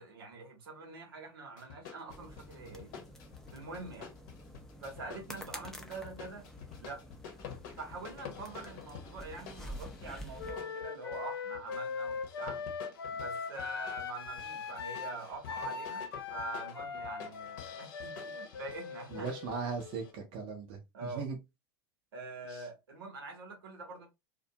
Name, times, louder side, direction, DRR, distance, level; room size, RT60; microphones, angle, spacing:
voice 1, 0.0-2.9 3.5-4.1 4.8-6.5 6.8-7.0 7.8-12.6 13.1-19.3 20.9-21.3 22.1-24.1, right 3 dB, 70° right, 0.9 m, -44 dB
sound 1, 1.6-20.1, left 8 dB, 55° left, 0.8 m, -50 dB
sound 2, 2.1-10.6, equal, 5° left, 0.5 m, -49 dB
Wind instrument woodwind instrument, 10.4-20.2, left 6 dB, 80° left, 0.4 m, -41 dB
voice 2, 19.1-20.8 21.1-21.4 22.5-22.6, right 5 dB, 45° right, 0.7 m, -38 dB
2.5 x 2.2 x 2.7 m
figure-of-eight pair, 85°, 12 cm